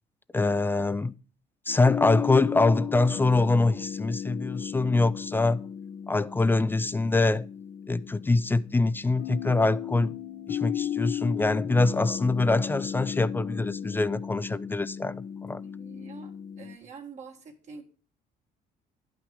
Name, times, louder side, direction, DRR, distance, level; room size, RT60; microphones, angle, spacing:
voice 1, 0.3-1.1 1.7-5.6 6.1-7.5 7.9-10.1 10.5-15.6, left 3 dB, 10° left, 0.3 m, -24 dB
sound 1, 1.7-16.8, left 9 dB, 60° left, 0.9 m, -35 dB
voice 2, 15.6-17.8, right 5 dB, 45° right, 1.6 m, -46 dB
10.5 x 5.9 x 4.7 m
cardioid pair, 110°, 17 cm